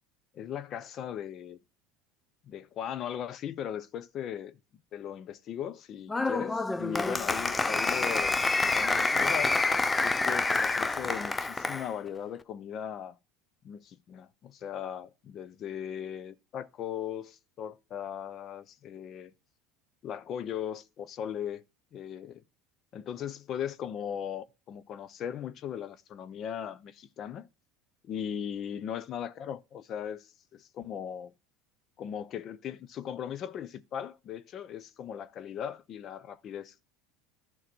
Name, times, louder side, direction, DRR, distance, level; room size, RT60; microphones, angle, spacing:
voice 1, 0.3-1.6 2.4-4.6 4.9-9.5 10.0-13.2 13.6-19.3 20.0-21.6 21.9-22.4 22.9-27.5 28.0-31.3 32.0-36.8, left 9 dB, 45° left, 0.8 m, -38 dB
Applause, 6.1-11.9, left 3 dB, 15° left, 0.5 m, -27 dB
11.0 x 3.8 x 6.1 m
supercardioid pair, 115°, 0 cm